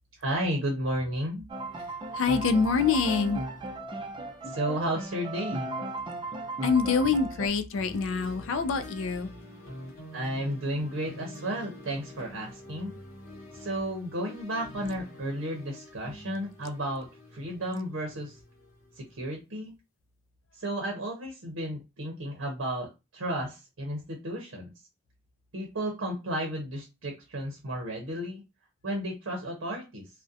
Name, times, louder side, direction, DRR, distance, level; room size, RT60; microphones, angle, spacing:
voice 1, 0.2-1.4 4.4-5.7 10.1-12.9 13.5-18.4 19.0-19.7 20.6-24.7 25.5-28.4 28.8-30.1, right 1 dB, 75° right, 0.7 m, -33 dB
sound 1, 1.5-7.5, right 2 dB, 25° right, 0.4 m, -36 dB
voice 2, 2.1-3.4 6.6-9.3, left 5 dB, 70° left, 0.4 m, -25 dB
sound 2, 7.7-19.2, left 1 dB, 85° left, 0.8 m, -47 dB
2.4 x 2.1 x 2.6 m
head